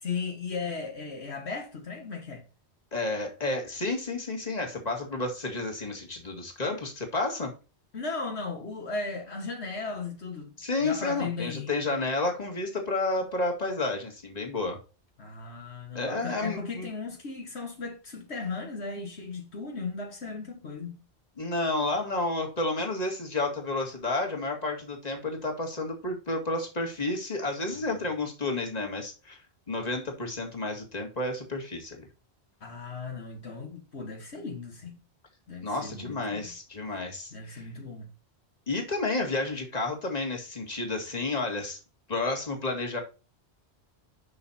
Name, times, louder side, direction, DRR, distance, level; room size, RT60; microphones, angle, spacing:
voice 1, 0.0-2.5 7.9-10.5 10.8-11.7 15.2-21.0 32.6-35.0 35.5-36.5 36.8-37.0 37.3-38.1, left 4 dB, 75° left, 1.8 m, -36 dB
voice 2, 2.9-7.5 10.6-14.8 15.9-16.9 21.4-29.4 29.7-32.0 35.6-37.7 38.7-41.8 42.1-43.0, left 2 dB, 35° left, 2.2 m, -31 dB
10.5 x 6.3 x 2.9 m
omnidirectional pair, 1.1 m